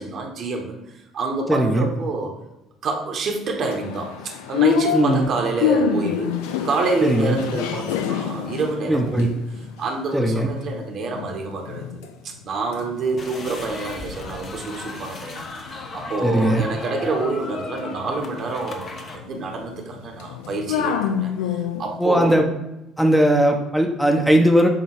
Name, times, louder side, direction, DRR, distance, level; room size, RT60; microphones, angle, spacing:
voice 1, 0.0-2.4 2.8-9.4 9.8-11.9 12.2-22.4, right 3 dB, 50° right, 2 dB, 1.1 m, -27 dB
voice 2, 1.5-1.9 4.9-5.3 7.0-7.4 8.9-9.3 10.1-10.5 16.2-16.6 22.0-22.5 23.0-24.7, right 1 dB, ahead, 2 dB, 0.7 m, -18 dB
sound 1, 3.6-10.7 11.1-12.1 12.4-22.0, left 7 dB, 70° left, 0.5 m, -28 dB
sound 2, 13.2-19.2, left 3 dB, 45° left, 0.9 m, -36 dB
7.5 x 2.7 x 4.7 m, 0.93 s
figure-of-eight pair, 50°, 0 cm